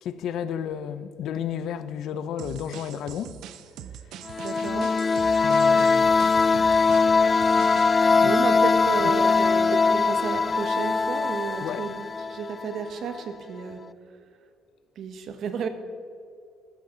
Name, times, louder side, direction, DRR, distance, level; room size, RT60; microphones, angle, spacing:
voice 1, 0.0-3.4 5.4-6.1 8.2-8.3 9.0-9.2 11.6-11.9, left 8 dB, 70° left, 0.7 m, -32 dB
sound 1, 2.4-7.9, right 9 dB, 75° right, 0.7 m, -42 dB
sound 2, 4.3-12.9, left 4 dB, 25° left, 0.3 m, -21 dB
voice 2, 4.4-4.9 8.2-12.0 12.3-13.8 15.0-15.7, right 6 dB, 60° right, 1.4 m, -32 dB
14.5 x 14.0 x 4.0 m
cardioid pair, 115°, 0 cm